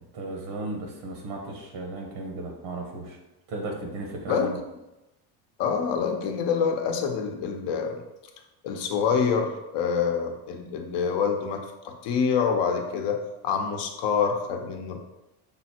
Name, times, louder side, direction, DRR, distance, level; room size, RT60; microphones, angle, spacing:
voice 1, 0.1-3.2 3.5-4.6, right 2 dB, 75° right, 1 dB, 1.3 m, -35 dB
voice 2, 5.6-8.0 8.6-13.2 13.4-15.0, left 6 dB, 60° left, 4 dB, 0.8 m, -26 dB
5.4 x 2.1 x 4.3 m, 0.98 s
supercardioid pair, 115°, 49 cm